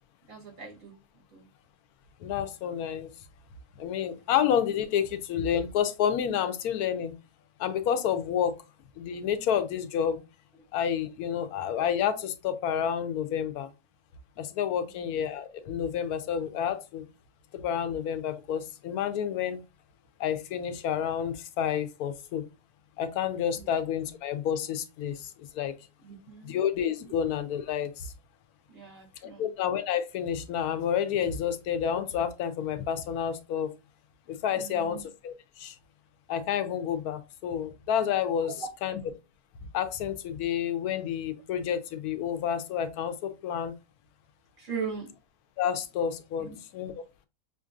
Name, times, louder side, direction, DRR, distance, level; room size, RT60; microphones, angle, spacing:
voice 1, 0.3-0.9 1.3-1.4 23.6-23.7 26.0-26.5 28.7-29.5 34.6-35.0 38.4-38.7 44.6-45.1 46.4-46.6, right 5 dB, 65° right, 2.1 m, -39 dB
voice 2, 2.2-3.1 3.8-7.1 7.6-8.5 9.0-10.2 10.7-13.7 14.4-17.0 17.5-19.6 20.2-22.4 23.0-25.7 26.4-28.1 29.4-33.7 34.3-35.7 36.3-39.0 39.7-43.7 45.6-46.5 46.7-47.0, left 8 dB, 85° left, 1.1 m, -29 dB
5.7 x 2.5 x 2.4 m
omnidirectional pair, 1.6 m